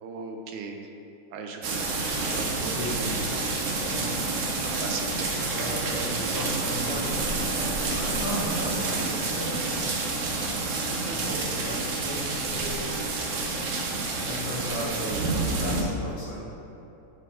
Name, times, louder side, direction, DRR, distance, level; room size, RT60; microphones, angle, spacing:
voice 1, 0.0-0.9 1.3-1.9 4.6-5.3 10.9-11.4 15.0-15.2, right 4 dB, 85° right, 3 dB, 1.4 m, -37 dB
sound 1, 1.6-15.8, right 3 dB, 65° right, 0.7 m, -29 dB
voice 2, 2.0-4.2 4.9-5.0 5.4-7.2 7.8-9.5 11.0-12.9 14.1-15.3 15.6-16.4, equal, 35° left, -9 dB, 1.2 m, -36 dB
7.2 x 4.1 x 4.2 m, 2.9 s
omnidirectional pair, 2.1 m